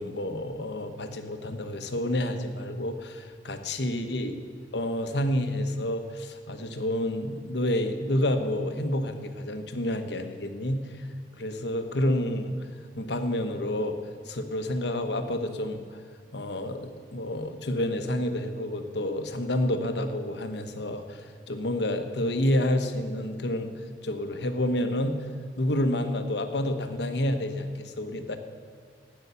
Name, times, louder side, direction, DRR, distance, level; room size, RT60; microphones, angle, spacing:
voice 1, 0.0-4.4 4.7-11.1 11.4-12.7 12.9-14.0 14.2-16.0 16.3-23.7 24.0-25.3 25.6-28.4, left 1 dB, 70° left, 7 dB, 1.1 m, -29 dB
12.5 x 9.0 x 6.9 m, 2.2 s
head